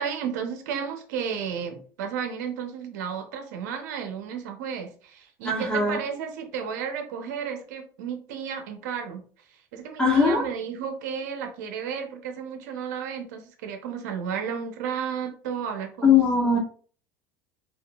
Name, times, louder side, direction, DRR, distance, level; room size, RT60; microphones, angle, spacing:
voice 1, 0.0-9.2 9.7-16.2, right 7 dB, 85° right, 5 dB, 0.8 m, -33 dB
voice 2, 5.4-6.0 10.0-10.5 16.0-16.6, left 5 dB, 10° left, -3 dB, 1.3 m, -20 dB
3.6 x 2.6 x 2.4 m, 0.43 s
supercardioid pair, 115°, 9 cm